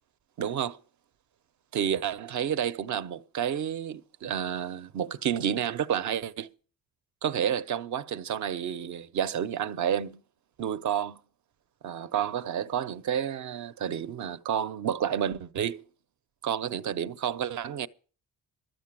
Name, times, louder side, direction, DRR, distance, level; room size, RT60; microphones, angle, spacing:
voice 1, 0.4-0.8 1.7-6.5 7.2-10.2 10.6-11.2 11.8-15.8 16.4-17.9, right 9 dB, 55° right, 0.8 m, -30 dB
13.5 x 7.6 x 7.5 m
cardioid pair, 160°, 35 cm